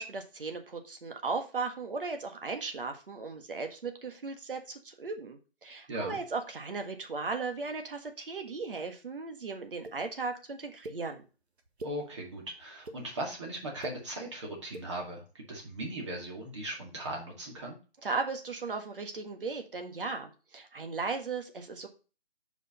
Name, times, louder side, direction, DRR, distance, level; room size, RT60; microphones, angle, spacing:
voice 1, 0.0-11.2 18.0-21.9, right 4 dB, 60° right, 6 dB, 1.6 m, -36 dB
sound 1, 9.8-10.0 10.8-11.0 11.6-12.0 12.6-13.0 13.6-14.0 14.6-14.9, right 2 dB, 80° right, 1.6 m, -42 dB
voice 2, 11.8-17.8, right 1 dB, 30° right, -1 dB, 2.1 m, -38 dB
6.4 x 5.1 x 4.2 m, 0.34 s
hypercardioid pair, 175°, 32 cm